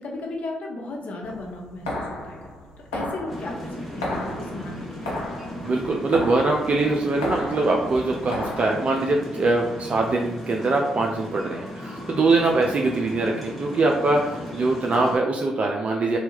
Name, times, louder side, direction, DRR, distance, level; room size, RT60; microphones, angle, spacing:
voice 1, 0.0-2.4 2.8-5.2, left 2 dB, 50° left, -1 dB, 0.7 m, -35 dB
sound 1, 1.2-8.7, left 1 dB, 85° left, 0.5 m, -34 dB
sound 2, 3.3-15.2, equal, 5° right, 1.4 m, -36 dB
voice 2, 5.6-16.2, right 3 dB, 45° right, 1 dB, 0.4 m, -23 dB
2.8 x 2.3 x 2.9 m, 0.89 s
hypercardioid pair, 40°, 3 cm